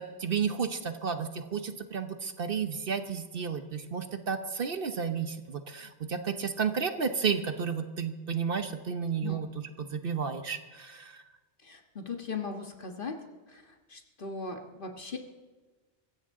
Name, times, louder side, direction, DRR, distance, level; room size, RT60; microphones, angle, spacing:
voice 1, 0.0-11.2, right 6 dB, 55° right, 8 dB, 1.1 m, -32 dB
voice 2, 11.6-13.2 13.5-13.6 13.9-15.2, left 4 dB, 50° left, 3 dB, 1.7 m, -38 dB
23.5 x 15.5 x 3.8 m, 1.3 s
omnidirectional pair, 1.2 m